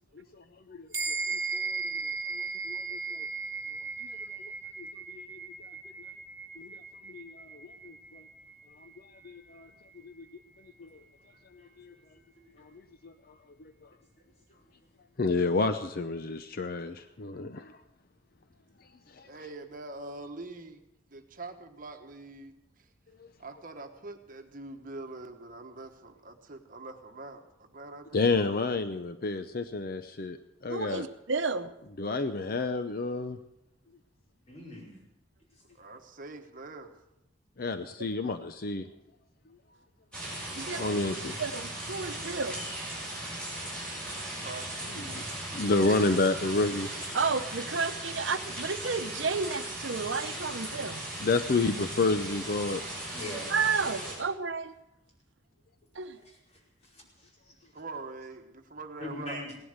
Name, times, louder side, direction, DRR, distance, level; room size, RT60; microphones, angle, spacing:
voice 1, 0.2-0.9 1.3-1.8 2.3-3.3 4.4-4.5 5.1-5.4 6.6-6.7 7.1-8.2 8.8-8.9 9.2-9.7 10.0-10.3 10.8-10.9 11.8-11.9 12.6-12.7 13.0-13.1 15.2-17.8 19.2-19.3 28.1-30.4 30.6-31.1 32.0-33.4 37.6-38.9 40.7-41.1 45.1-45.2 45.5-46.9 51.2-52.8, left 3 dB, 50° left, 9 dB, 0.6 m, -30 dB
sound 1, 0.9-10.7, right 4 dB, 15° right, 2.2 m, -38 dB
voice 2, 19.2-20.8 21.1-22.9 23.4-28.3 35.7-36.9 40.6-41.3 44.4-45.3 45.8-46.2 57.7-59.4, right 2 dB, 45° right, 5 dB, 1.2 m, -44 dB
voice 3, 30.7-31.7 40.6-40.8 41.4-42.6 47.1-51.0 53.5-54.7 56.0-56.2, right 4 dB, 75° right, 10 dB, 0.8 m, -31 dB
voice 4, 34.5-34.9 41.3-41.4 43.9-44.0 53.1-53.5 56.2-56.4 56.8-57.3 59.0-59.6, left 1 dB, 35° left, -3 dB, 5.0 m, -41 dB
sound 2, 40.1-54.1, right 1 dB, 5° left, 6.6 m, -38 dB
17.5 x 11.0 x 6.6 m, 0.87 s
head